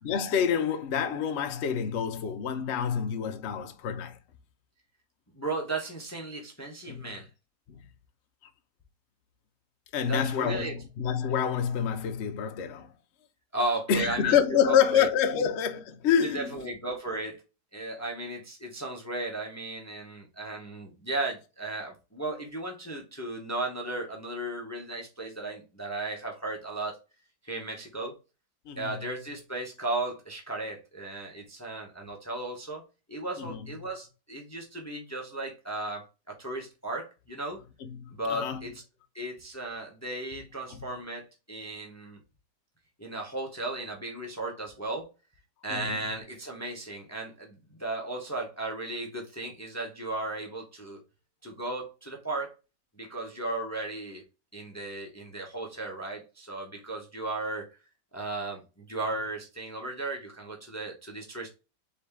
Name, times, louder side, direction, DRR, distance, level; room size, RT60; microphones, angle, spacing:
voice 1, 0.0-4.2 6.9-7.2 7.7-7.8 9.9-12.9 13.9-16.5 28.7-29.0 33.4-33.7 37.8-38.6 40.7-40.8 45.7-46.0, left 8 dB, 70° left, 0.6 m, -27 dB
voice 2, 5.3-7.3 10.0-10.8 13.5-14.4 14.6-15.1 15.4-15.5 16.2-17.4 17.7-27.0 27.4-28.2 28.8-32.8 33.1-37.6 38.1-38.8 39.1-42.2 43.0-45.1 45.6-51.0 51.4-52.5 53.0-54.2 54.5-57.7 58.1-61.5, right 2 dB, 20° left, 0.4 m, -35 dB
3.9 x 3.5 x 3.4 m
omnidirectional pair, 2.0 m